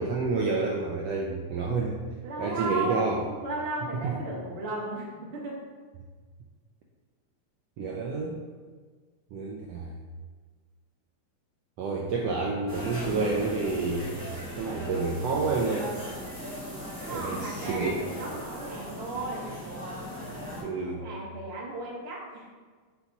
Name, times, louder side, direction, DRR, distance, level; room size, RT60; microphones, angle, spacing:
voice 1, 0.0-2.0 2.4-3.2 3.9-4.2 7.8-8.4 9.3-9.9 11.8-14.1 14.6-15.9 17.1-18.3 20.6-21.1, right 3 dB, 85° right, -1 dB, 1.4 m, -29 dB
voice 2, 2.2-5.6 17.0-19.5 20.5-22.5, right 2 dB, 50° right, -4 dB, 0.7 m, -35 dB
sound 1, 12.7-20.6, equal, 10° right, 0.9 m, -38 dB
5.7 x 3.9 x 4.6 m, 1.5 s
omnidirectional pair, 3.4 m